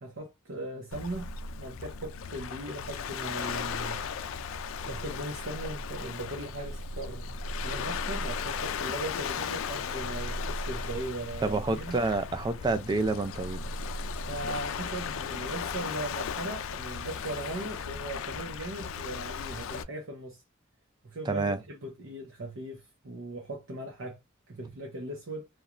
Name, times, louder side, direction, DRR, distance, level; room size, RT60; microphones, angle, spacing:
voice 1, 0.0-4.5 4.8-12.0 14.3-20.4 21.0-24.2 24.5-25.5, right 1 dB, 75° right, 0.7 m, -39 dB
Waves surf, 0.9-19.8, left 5 dB, 75° left, 0.3 m, -36 dB
voice 2, 11.4-13.7 21.3-21.6, right 3 dB, 20° right, 0.3 m, -28 dB
2.9 x 2.2 x 2.4 m
head